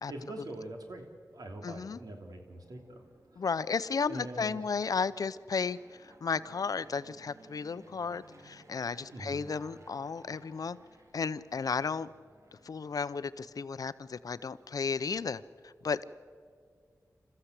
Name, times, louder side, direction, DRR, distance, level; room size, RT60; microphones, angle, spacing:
voice 1, 0.1-3.0 3.3-3.4 4.1-4.6 9.1-9.5, right 1 dB, 80° right, 3 dB, 3.0 m, -43 dB
voice 2, 1.6-2.0 3.4-10.8 11.1-12.1 12.6-16.0, left 5 dB, 70° left, 15 dB, 0.6 m, -34 dB
Fixed-wing aircraft airplane, 2.3-13.3, right 2 dB, 50° right, 2.5 m, -61 dB
sound 1, 9.5-12.0 12.3-13.3 13.8-13.9 14.2-14.3, left 2 dB, 15° right, 4.9 m, -62 dB
27.5 x 14.5 x 8.2 m, 2.1 s
wide cardioid pair, 110°, 6 cm